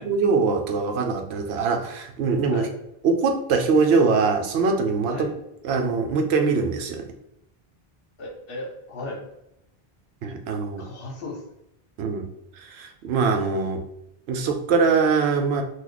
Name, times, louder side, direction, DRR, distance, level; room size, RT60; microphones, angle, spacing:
voice 1, 0.0-2.7 3.0-5.3 5.6-7.1 10.2-10.9 12.0-12.3 12.6-13.8 14.3-15.6, right 4 dB, 85° right, 4 dB, 0.8 m, -22 dB
voice 2, 8.2-9.2 10.8-11.4, left 2 dB, 65° left, 0 dB, 1.0 m, -35 dB
3.0 x 2.3 x 3.8 m, 0.83 s
omnidirectional pair, 1.0 m